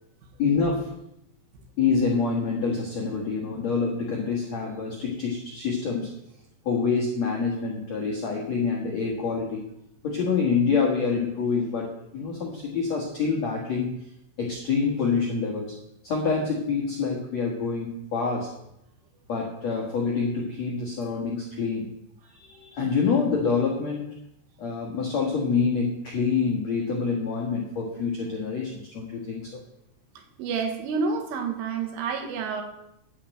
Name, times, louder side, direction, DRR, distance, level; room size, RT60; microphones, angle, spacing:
voice 1, 0.4-1.0 1.8-6.1 6.6-9.7 10.0-13.9 14.4-15.7 16.0-18.5 19.3-21.9 22.3-24.1 24.6-29.6, left 5 dB, 65° left, -2 dB, 1.7 m, -26 dB
voice 2, 30.4-32.6, right 5 dB, 75° right, 4 dB, 4.0 m, -29 dB
12.5 x 5.8 x 9.1 m, 0.81 s
omnidirectional pair, 5.9 m